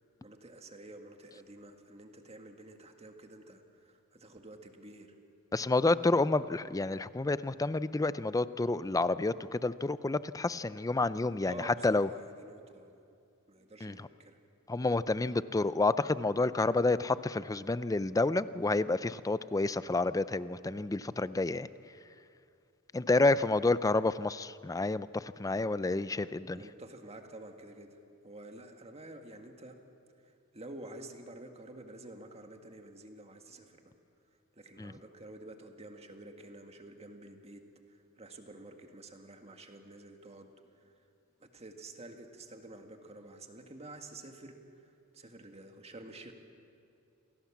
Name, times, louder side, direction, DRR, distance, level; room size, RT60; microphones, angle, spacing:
voice 1, 0.2-5.2 11.4-13.2 13.5-14.4 26.5-27.9 28.2-29.8 30.2-33.9 34.5-37.6 37.9-40.9 41.4-46.3, right 2 dB, 30° right, 4 dB, 1.8 m, -50 dB
voice 2, 5.5-12.1 13.8-13.9 14.7-21.7 22.9-26.6 34.8-34.9, left 2 dB, 15° left, 15 dB, 0.4 m, -29 dB
27.5 x 17.5 x 7.3 m, 2.5 s
head